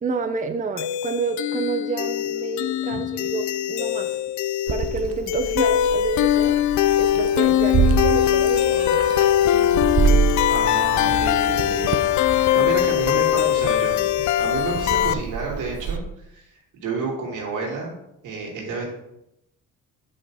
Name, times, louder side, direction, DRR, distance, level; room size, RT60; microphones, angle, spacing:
voice 1, 0.0-4.2 4.7-6.6 7.0-9.0 9.5-9.8, right 5 dB, 25° right, 7 dB, 0.7 m, -29 dB
sound 1, 0.8-15.1, left 12 dB, 70° left, 0.5 m, -21 dB
Meow, 4.7-16.0, right 6 dB, 50° right, 0.9 m, -27 dB
voice 2, 10.5-14.0 14.4-16.0 16.3-17.9 18.2-18.8, right 4 dB, 80° right, -1 dB, 2.8 m, -30 dB
8.5 x 5.4 x 4.2 m, 0.83 s
cardioid pair, 90°, 30 cm